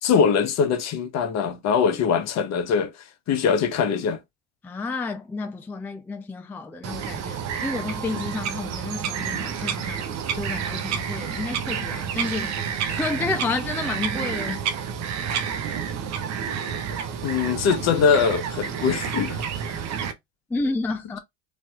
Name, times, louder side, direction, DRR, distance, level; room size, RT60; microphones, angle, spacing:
voice 1, 0.0-2.9 3.3-4.2 17.2-19.5, left 6 dB, 45° left, 0.8 m, -22 dB
voice 2, 4.6-10.0 10.3-12.5 12.9-14.6 20.5-21.2, left 3 dB, 5° left, 0.4 m, -30 dB
Bird vocalization bird call bird song, 6.8-20.1, right 7 dB, 50° right, 0.8 m, -29 dB
3.3 x 2.6 x 2.3 m
hypercardioid pair, 70°, 36 cm